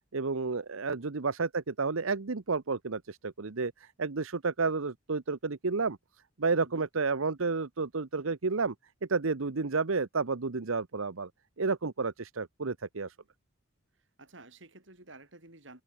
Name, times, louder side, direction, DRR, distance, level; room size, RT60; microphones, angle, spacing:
voice 1, 0.1-6.0 6.4-8.7 9.0-11.3 11.6-13.1, right 4 dB, 80° right, 0.9 m, -31 dB
voice 2, 14.2-15.8, right 2 dB, 65° right, 4.4 m, -52 dB
head